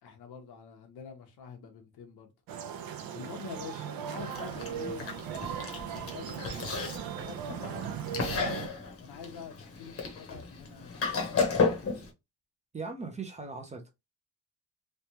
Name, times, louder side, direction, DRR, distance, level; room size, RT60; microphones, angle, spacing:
voice 1, 0.0-2.3 3.1-5.2 5.8-6.5 7.0-8.0 9.0-12.0, left 7 dB, 85° left, 1.0 m, -46 dB
sound 1, 2.5-8.7, right 8 dB, 65° right, 0.6 m, -38 dB
Chewing mastication, 4.2-12.1, left 4 dB, 40° left, 0.9 m, -33 dB
voice 2, 12.7-13.9, right 4 dB, 20° right, 0.5 m, -39 dB
3.3 x 2.3 x 2.8 m
cardioid pair, 170°, 37 cm